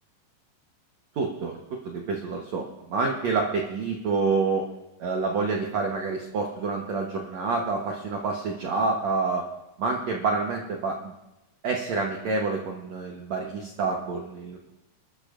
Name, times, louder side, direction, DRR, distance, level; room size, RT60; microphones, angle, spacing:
voice 1, 1.2-1.6 1.8-4.7 5.0-9.5 9.8-11.0 11.6-14.7, right 4 dB, 60° right, 0 dB, 1.9 m, -28 dB
29.5 x 13.5 x 2.5 m, 0.91 s
omnidirectional pair, 4.4 m